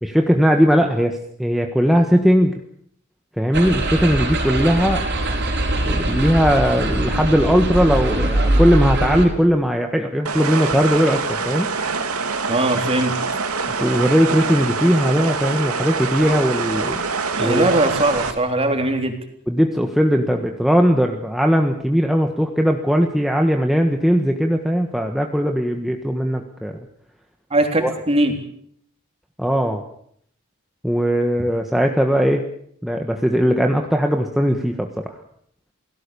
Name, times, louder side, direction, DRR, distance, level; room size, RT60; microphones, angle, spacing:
voice 1, 0.0-2.6 3.4-5.0 5.8-11.7 13.8-17.0 17.4-17.7 19.5-26.8 27.8-27.9 29.4-29.8 30.8-32.4 32.8-35.1, equal, ahead, 3 dB, 1.4 m, -19 dB
sound 1, 3.5-9.3, right 1 dB, 55° right, 4.9 m, -21 dB
sound 2, 10.3-18.3, right 4 dB, 90° right, 2.6 m, -25 dB
voice 2, 12.5-13.1 17.4-19.1 27.5-28.3, right 1 dB, 30° right, 4 dB, 3.7 m, -20 dB
28.5 x 18.0 x 7.0 m, 0.67 s
head